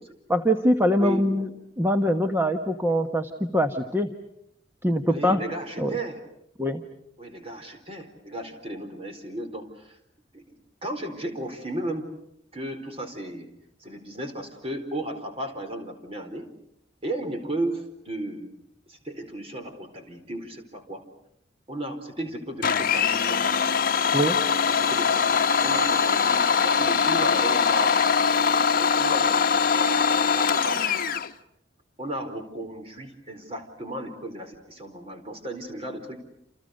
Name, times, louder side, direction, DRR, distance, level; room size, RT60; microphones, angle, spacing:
voice 1, 0.3-1.5 1.8-4.1 4.8-5.4 5.8-5.9 6.6-6.8 24.1-24.4, equal, 15° right, 5 dB, 1.3 m, -23 dB
voice 2, 1.0-1.5 5.1-6.2 7.2-10.0 10.3-10.4 10.8-12.1 12.5-13.5 13.8-16.5 17.0-18.6 18.9-21.0 21.7-23.6 24.7-28.0 28.8-31.1 32.0-36.3, right 1 dB, 30° right, 5 dB, 4.4 m, -34 dB
Domestic sounds home sounds, 22.6-31.3, left 6 dB, 50° left, 1.1 m, -22 dB
29.0 x 28.5 x 6.6 m, 0.75 s
head